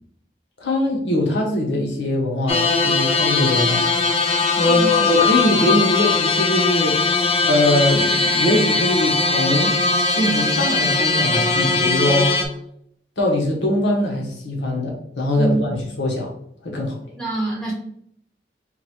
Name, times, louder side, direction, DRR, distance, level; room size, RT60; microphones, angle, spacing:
voice 1, 0.6-3.8 4.6-9.7 10.0-12.4 13.2-15.7 16.0-16.3 16.6-16.9, left 1 dB, 85° left, 0 dB, 1.1 m, -21 dB
sound 1, 2.5-12.4, left 4 dB, 35° left, 0.4 m, -20 dB
voice 2, 4.7-5.1 15.4-15.7 17.2-17.7, right 2 dB, 5° left, -5 dB, 0.9 m, -25 dB
3.9 x 2.3 x 4.4 m, 0.70 s
head